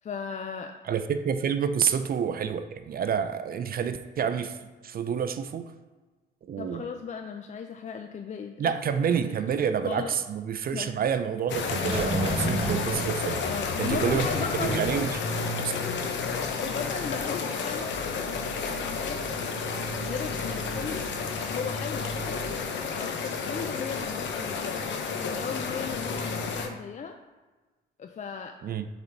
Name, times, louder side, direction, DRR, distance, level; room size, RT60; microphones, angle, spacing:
voice 1, 0.0-0.7 6.6-8.7 9.3-9.4 9.8-10.2 10.7-10.9 13.5-14.8 15.8-15.9 16.4-18.0 18.8-19.3 20.0-21.1 21.5-24.9 25.3-27.2 28.0-28.6, left 6 dB, 35° left, 5 dB, 0.4 m, -36 dB
voice 2, 0.9-4.6 4.8-5.7 6.4-6.8 8.6-13.4 13.8-14.3 14.6-15.1 15.4-15.8 28.6-28.9, right 7 dB, 50° right, 10 dB, 0.5 m, -28 dB
sound 1, 11.5-26.7, left 5 dB, 65° left, 0.8 m, -31 dB
sound 2, 11.6-14.5 14.7-14.8, right 2 dB, 30° right, 1.0 m, -31 dB
sound 3, 11.6-22.6, right 6 dB, 85° right, 0.8 m, -46 dB
6.9 x 4.0 x 4.5 m, 1.3 s
cardioid pair, 90°, 20 cm